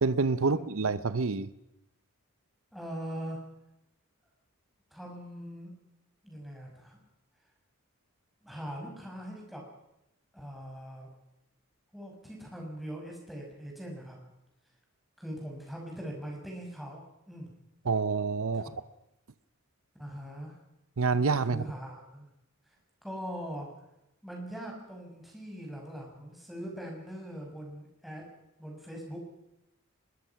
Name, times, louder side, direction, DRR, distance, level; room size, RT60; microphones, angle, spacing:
voice 1, 0.0-1.5 17.9-18.7 21.0-21.7, right 4 dB, 75° right, 15 dB, 0.8 m, -27 dB
voice 2, 2.7-3.4 4.9-5.7 6.2-7.0 8.4-9.6 10.3-11.1 11.9-14.2 15.2-17.5 20.0-20.6 21.5-22.3 22.7-22.8 23.0-23.7 24.2-28.2 28.6-29.2, equal, ahead, -1 dB, 6.1 m, -41 dB
24.5 x 21.5 x 5.9 m, 0.88 s
head